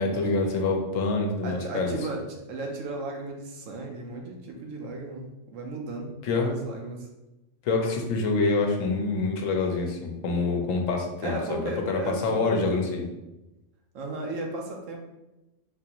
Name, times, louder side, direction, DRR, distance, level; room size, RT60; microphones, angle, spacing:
voice 1, 0.0-1.9 6.2-6.5 7.6-13.1, left 3 dB, 75° left, 2 dB, 1.0 m, -26 dB
voice 2, 1.4-7.1 11.2-12.7 13.9-15.0, right 2 dB, 75° right, 1 dB, 1.0 m, -35 dB
3.9 x 2.5 x 2.8 m, 0.98 s
omnidirectional pair, 1.4 m